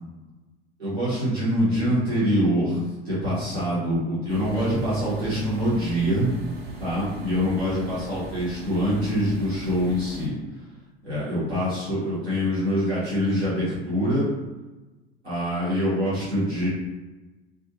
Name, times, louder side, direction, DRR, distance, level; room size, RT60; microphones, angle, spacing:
voice 1, 0.8-6.3 6.8-10.3 11.0-14.3 15.2-16.7, equal, 85° right, -11 dB, 1.1 m, -24 dB
sound 1, 4.3-10.3, right 3 dB, 30° right, 0.8 m, -40 dB
2.5 x 2.3 x 2.9 m, 1.1 s
figure-of-eight pair, 70°, 32 cm